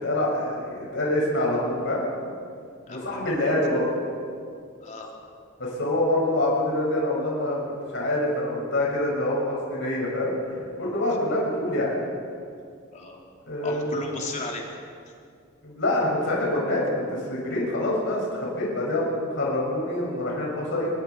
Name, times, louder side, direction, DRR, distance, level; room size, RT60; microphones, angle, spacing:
voice 1, 0.0-2.0 2.9-3.9 5.6-7.6 7.9-11.9 13.5-13.9 15.6-20.9, left 1 dB, 65° left, -3 dB, 6.3 m, -26 dB
voice 2, 2.9-3.5 4.8-5.1 12.9-13.2 13.6-14.6, left 2 dB, 35° left, -1 dB, 3.5 m, -35 dB
26.0 x 21.0 x 4.7 m, 2.2 s
head